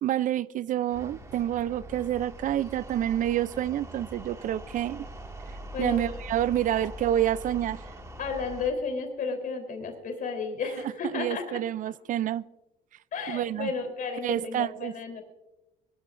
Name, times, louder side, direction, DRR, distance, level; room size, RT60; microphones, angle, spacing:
voice 1, 0.0-5.1 5.8-7.8 11.0-12.4 13.3-13.7 14.2-14.9, right 12 dB, 50° right, 0.5 m, -28 dB
sound 1, 0.9-8.7, equal, 20° right, 2.0 m, -43 dB
voice 2, 8.2-11.6 13.1-15.2, left 4 dB, 55° left, 3.6 m, -33 dB
21.5 x 13.5 x 2.6 m
cardioid pair, 110°, 17 cm